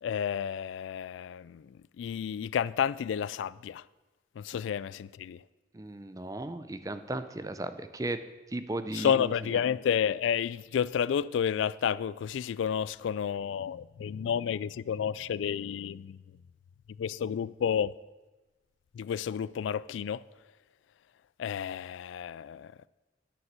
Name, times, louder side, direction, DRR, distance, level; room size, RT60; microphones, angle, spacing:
voice 1, 0.0-1.6 2.0-3.8 4.4-5.4 8.9-16.2 17.0-17.9 19.0-20.2 21.4-22.7, left 8 dB, 90° left, 0.3 m, -30 dB
voice 2, 5.7-8.2 8.5-9.6, right 2 dB, 20° right, 0.5 m, -36 dB
10.0 x 6.3 x 7.4 m
head